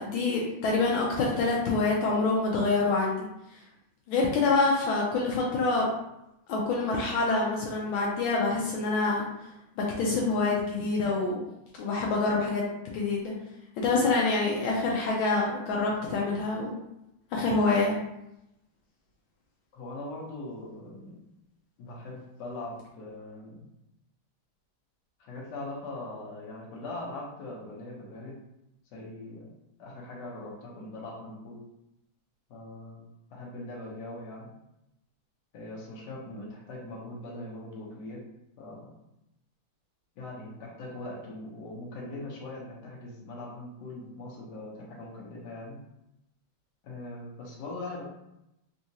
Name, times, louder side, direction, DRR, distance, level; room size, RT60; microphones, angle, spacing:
voice 1, 0.0-3.6 4.1-5.9 6.5-9.5 9.8-11.4 11.8-13.3 13.8-16.7 17.3-18.0, left 3 dB, 80° left, -2 dB, 1.4 m, -26 dB
voice 2, 19.7-21.1 21.8-23.6 25.2-28.4 28.9-29.5 29.8-31.6 32.5-33.0 33.3-34.5 35.5-38.2 38.6-38.9 40.2-45.8 46.8-48.0, left 2 dB, 60° left, -4 dB, 1.4 m, -41 dB
3.8 x 2.4 x 2.7 m, 0.87 s
omnidirectional pair, 2.3 m